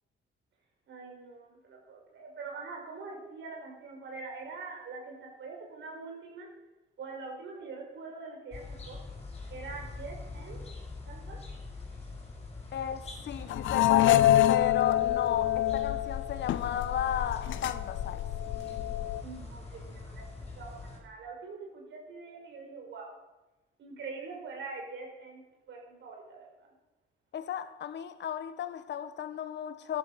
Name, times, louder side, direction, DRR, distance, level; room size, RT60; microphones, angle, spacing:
voice 1, 0.9-6.5 7.0-9.0 9.5-10.6 11.1-11.4 19.2-20.3 20.6-23.1 23.8-26.7, right 4 dB, 65° right, 6.0 m, -44 dB
sound 1, 8.5-21.0, left 3 dB, 30° left, 5.5 m, -44 dB
voice 2, 12.7-18.2 27.3-30.0, left 9 dB, 65° left, 1.2 m, -34 dB
sound 2, 13.5-19.2, left 13 dB, 80° left, 0.7 m, -27 dB
13.5 x 12.5 x 7.0 m
cardioid pair, 90°, 20 cm